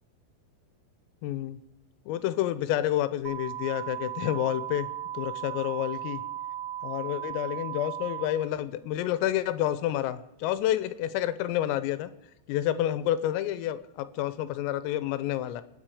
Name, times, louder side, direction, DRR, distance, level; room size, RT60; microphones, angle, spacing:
voice 1, 1.2-1.6 2.1-4.9 5.2-6.2 6.8-12.1 12.5-15.6, left 12 dB, 85° left, 13 dB, 3.5 m, -29 dB
sound 1, 3.3-8.3, right 11 dB, 50° right, 5.1 m, -36 dB
26.5 x 9.7 x 4.9 m, 0.91 s
omnidirectional pair, 5.9 m